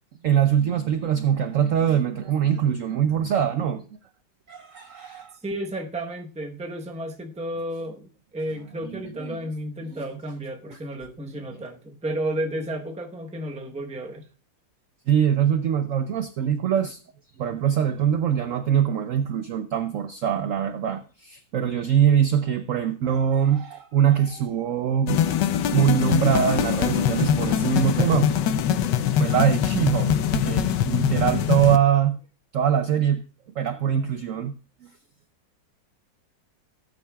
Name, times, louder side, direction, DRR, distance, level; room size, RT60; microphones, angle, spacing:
voice 1, 0.2-3.9 4.5-5.4 8.8-9.4 9.9-10.0 10.7-10.8 15.1-17.0 17.4-25.2 25.7-28.3 29.0-32.2 32.5-33.2 33.6-34.5 34.8-34.9, right 9 dB, 70° right, 0.8 m, -23 dB
voice 2, 5.4-14.3, right 1 dB, 5° right, 0.6 m, -32 dB
sound 1, 25.1-31.8, left 9 dB, 75° left, 1.3 m, -23 dB
17.0 x 8.8 x 2.3 m
omnidirectional pair, 2.0 m